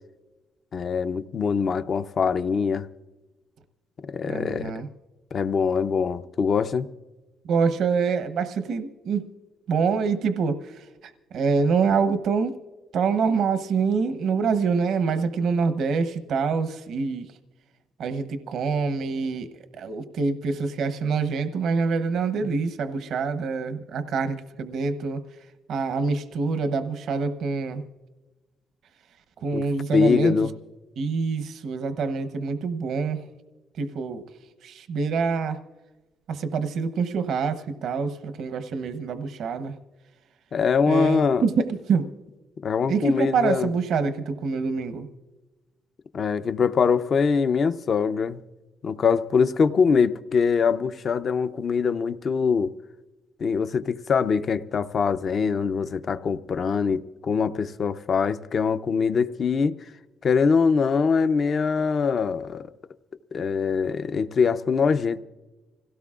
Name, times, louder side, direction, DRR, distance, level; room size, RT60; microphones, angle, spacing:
voice 1, 0.7-2.9 4.1-4.7 5.3-6.9 29.5-29.7 29.9-30.5 40.5-41.4 42.6-43.7 46.1-48.4 48.8-52.7 53.4-59.7 60.2-62.7 63.3-65.2, left 5 dB, 50° left, 12 dB, 0.6 m, -23 dB
voice 2, 4.3-4.9 7.4-9.3 9.7-10.8 11.3-12.5 12.9-17.3 18.0-19.5 19.8-25.2 25.7-27.8 29.4-30.3 31.0-33.2 33.8-34.2 34.6-35.6 36.3-39.7 40.9-42.1 42.9-45.1, right 5 dB, 75° right, 9 dB, 0.9 m, -25 dB
26.0 x 17.0 x 2.4 m, 1.2 s
cardioid pair, 90°, 0 cm